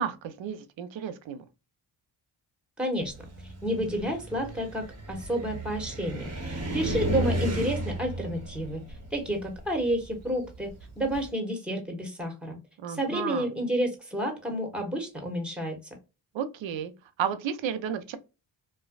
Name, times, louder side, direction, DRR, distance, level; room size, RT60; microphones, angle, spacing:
voice 1, 0.0-1.4 12.8-13.5 16.3-16.9 17.2-18.2, right 8 dB, 65° right, 0.7 m, -32 dB
voice 2, 2.8-3.1 3.6-8.8 9.1-10.7 11.0-12.6 12.9-15.8, equal, ahead, 1.2 m, -30 dB
Car, 3.0-11.3, right 1 dB, 30° right, 1.0 m, -34 dB
3.1 x 2.3 x 2.3 m
cardioid pair, 70°, 49 cm